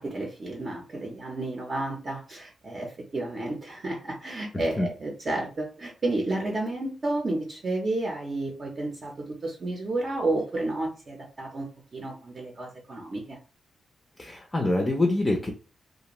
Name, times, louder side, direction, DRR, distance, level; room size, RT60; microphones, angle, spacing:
voice 1, 0.0-13.4, right 2 dB, 40° right, 0 dB, 0.7 m, -31 dB
voice 2, 14.2-15.5, left 2 dB, 20° left, 1 dB, 0.5 m, -25 dB
2.5 x 2.1 x 3.0 m, 0.35 s
cardioid pair, 120°, 0 cm